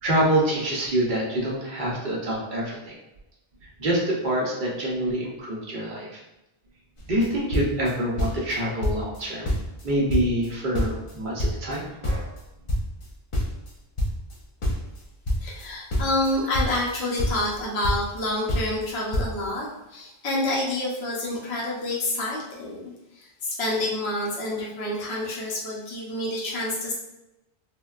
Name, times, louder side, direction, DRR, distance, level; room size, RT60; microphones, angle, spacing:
voice 1, 0.0-2.9 3.8-6.2 7.1-9.5 9.8-12.3, right 1 dB, 55° right, -3 dB, 0.8 m, -26 dB
sound 1, 7.0-7.3 7.5-8.6 8.8-9.2 9.5-11.1 11.4-14.4 14.6-16.9 17.2-18.2 18.5-18.9 19.1-19.3, equal, 40° left, 0.5 m, -27 dB
voice 2, 15.4-26.9, left 1 dB, 80° left, -4 dB, 1.0 m, -28 dB
3.5 x 2.1 x 2.3 m, 0.94 s
omnidirectional pair, 1.0 m